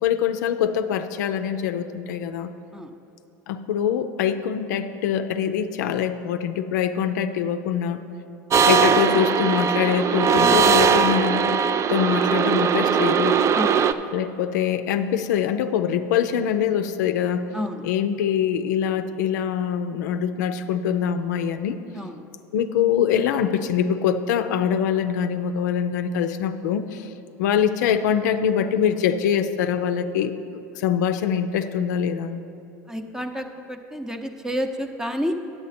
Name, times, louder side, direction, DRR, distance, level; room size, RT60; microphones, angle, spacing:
voice 1, 0.0-2.5 3.5-8.0 8.6-11.6 11.9-13.4 14.1-17.5 17.8-21.8 22.5-32.4, left 8 dB, 75° left, 9 dB, 0.4 m, -24 dB
sound 1, 8.5-13.9, right 6 dB, 30° right, 0.3 m, -19 dB
voice 2, 32.9-35.3, equal, 5° right, 6 dB, 0.7 m, -29 dB
9.4 x 8.2 x 4.2 m, 2.8 s
hypercardioid pair, 95°, 10 cm